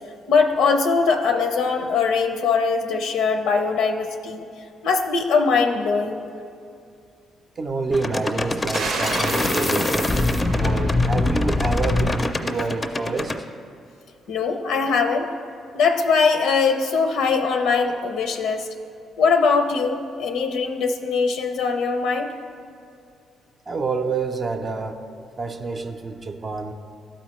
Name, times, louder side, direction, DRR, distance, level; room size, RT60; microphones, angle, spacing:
voice 1, 0.3-4.4 4.8-6.3 14.3-15.3 15.7-18.7 19.2-22.3, left 5 dB, 85° left, 5 dB, 0.5 m, -21 dB
voice 2, 7.6-10.2 10.5-13.3 23.7-25.0 25.4-26.7, right 4 dB, 35° right, 5 dB, 0.5 m, -28 dB
sound 1, 7.9-13.4, left 2 dB, 25° left, 0.4 m, -23 dB
sound 2, 8.7-12.1, right 3 dB, 90° right, 0.7 m, -32 dB
12.0 x 4.2 x 3.1 m, 2.5 s
cardioid pair, 90°, 0 cm